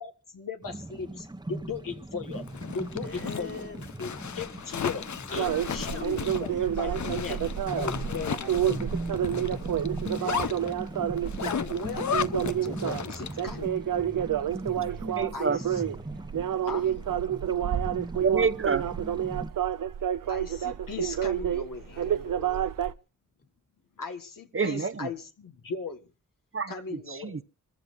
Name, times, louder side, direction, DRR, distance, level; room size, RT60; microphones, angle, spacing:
voice 1, 0.0-2.5 2.7-3.6 4.0-5.0 5.3-7.5 7.8-9.1 11.4-13.8 15.3-15.8 16.6-16.9 20.3-22.1 24.0-26.1 26.7-27.4, left 4 dB, 85° left, 1.6 m, -37 dB
sound 1, 0.6-19.5, right 2 dB, 15° right, 1.0 m, -40 dB
Zipper (clothing), 2.3-13.5, left 7 dB, 60° left, 0.7 m, -35 dB
voice 2, 2.9-3.9 5.3-6.7 8.0-8.5 9.9-10.7 21.9-22.7, left 2 dB, 45° left, 3.1 m, -44 dB
sound 2, 5.4-22.9, right 10 dB, 80° right, 0.7 m, -29 dB
voice 3, 14.8-15.6 18.2-18.8 24.5-25.1 26.5-27.4, right 5 dB, 40° right, 0.8 m, -29 dB
26.5 x 14.5 x 2.5 m
cardioid pair, 45°, 32 cm